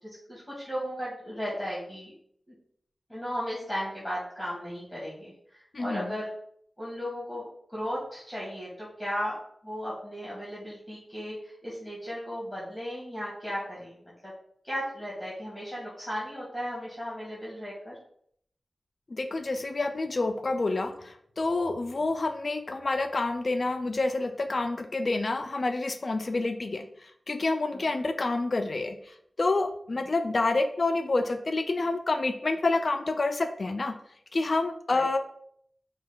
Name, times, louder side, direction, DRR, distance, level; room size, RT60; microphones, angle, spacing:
voice 1, 0.0-2.1 3.1-5.3 5.8-6.3 6.8-9.3 9.6-14.0 14.6-18.0 27.7-27.9 34.9-35.1, equal, ahead, -7 dB, 1.6 m, -35 dB
voice 2, 5.7-6.1 19.1-34.0 34.3-35.2, left 3 dB, 55° left, 8 dB, 0.3 m, -28 dB
5.0 x 2.3 x 3.8 m, 0.66 s
wide cardioid pair, 85°, 0 cm